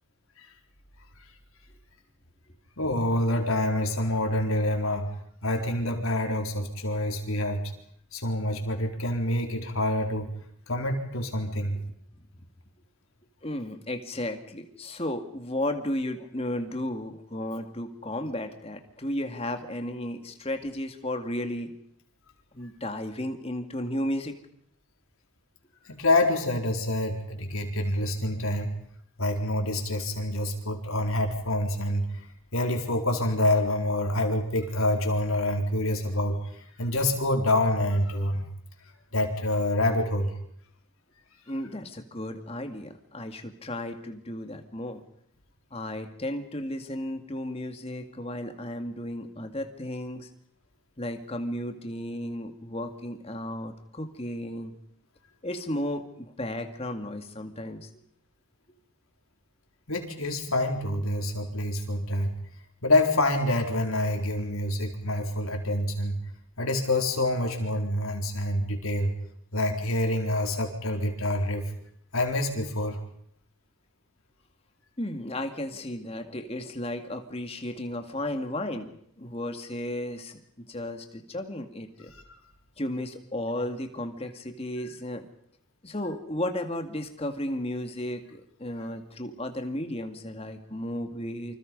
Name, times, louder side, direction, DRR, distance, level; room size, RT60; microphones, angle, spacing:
voice 1, 2.8-5.1 5.4-7.7 8.1-10.3 10.7-11.8 25.8-28.7 29.2-32.1 32.5-38.4 39.1-40.3 59.9-62.3 62.8-66.2 66.6-69.1 69.5-71.6 72.1-73.0, left 1 dB, 75° left, 3 dB, 4.3 m, -27 dB
voice 2, 13.4-21.7 22.5-24.3 41.5-45.0 45.7-50.3 51.0-54.7 55.4-57.9 75.0-82.1 82.8-85.3 85.8-91.5, left 1 dB, 25° left, 6 dB, 2.1 m, -34 dB
28.0 x 26.0 x 5.4 m, 0.67 s
head